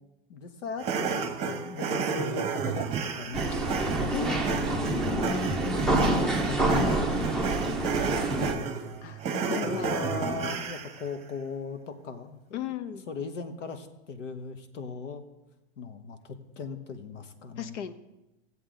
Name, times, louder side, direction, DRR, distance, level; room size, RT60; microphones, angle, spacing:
voice 1, 0.3-2.9 3.2-3.9 4.5-5.3 5.9-7.2 7.6-8.9 9.3-12.7 13.1-15.2 15.8-17.8, left 5 dB, 85° left, 8 dB, 1.3 m, -38 dB
sound 1, 0.8-11.0, right 6 dB, 20° right, 1.0 m, -32 dB
sound 2, 3.3-8.5, right 2 dB, ahead, 0.7 m, -27 dB
voice 2, 9.5-9.9 12.5-13.1 17.6-17.9, left 9 dB, 70° left, 12 dB, 1.0 m, -35 dB
16.5 x 7.9 x 3.8 m, 0.97 s
supercardioid pair, 140°, 36 cm